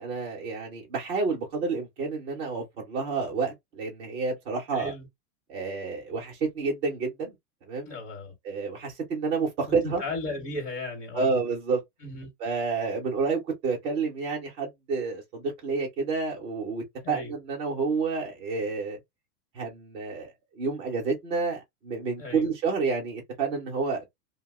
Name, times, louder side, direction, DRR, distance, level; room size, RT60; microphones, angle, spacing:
voice 1, 0.0-4.9 5.5-7.3 7.7-7.9 8.4-10.0 11.1-11.8 12.4-19.0 19.5-20.3 20.5-24.0, right 4 dB, 15° right, 0.4 m, -29 dB
voice 2, 4.7-5.1 7.9-8.3 9.7-11.3 12.0-12.3 17.0-17.3 22.2-22.5, left 2 dB, 40° left, 1.0 m, -36 dB
2.8 x 2.0 x 3.4 m
supercardioid pair, 165°, 47 cm